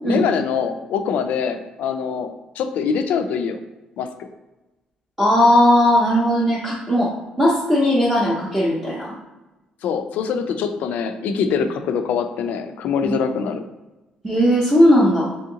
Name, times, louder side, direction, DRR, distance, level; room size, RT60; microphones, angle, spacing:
voice 1, 0.0-2.3 2.6-3.6 4.0-4.3 9.8-13.6, left 6 dB, 75° left, 8 dB, 0.3 m, -23 dB
voice 2, 5.2-9.1 11.5-11.6 13.0-13.2 14.2-15.3, equal, 10° right, -6 dB, 0.5 m, -17 dB
2.8 x 2.8 x 3.7 m, 1.1 s
cardioid pair, 170°, 3 cm